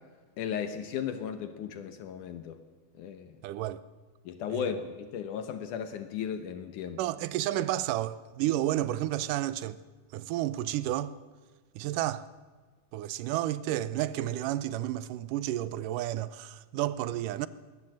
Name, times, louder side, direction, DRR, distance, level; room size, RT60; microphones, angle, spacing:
voice 1, 0.4-2.6 3.0-3.4 4.3-7.0, left 8 dB, 75° left, 2.5 m, -35 dB
voice 2, 3.4-3.8 4.5-4.8 7.0-9.8 10.1-11.2 11.8-12.3 12.9-17.5, right 13 dB, 80° right, 2.3 m, -31 dB
20.5 x 19.0 x 7.7 m
omnidirectional pair, 3.7 m